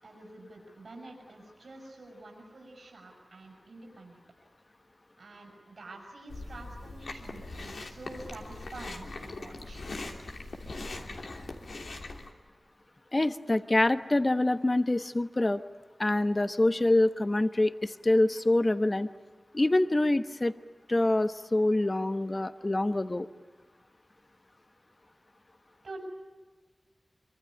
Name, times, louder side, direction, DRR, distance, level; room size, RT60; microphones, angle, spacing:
voice 1, 0.0-4.2 5.2-9.8 25.8-26.0, right 2 dB, 85° right, -1 dB, 6.5 m, -47 dB
Chewing mastication, 6.3-12.3, left 2 dB, 85° left, 2.9 m, -41 dB
voice 2, 13.1-15.6 16.0-19.1 19.5-20.5 20.9-23.3, left 2 dB, 35° left, 11 dB, 1.1 m, -25 dB
25.0 x 24.0 x 10.0 m, 1.3 s
cardioid pair, 45°, 0 cm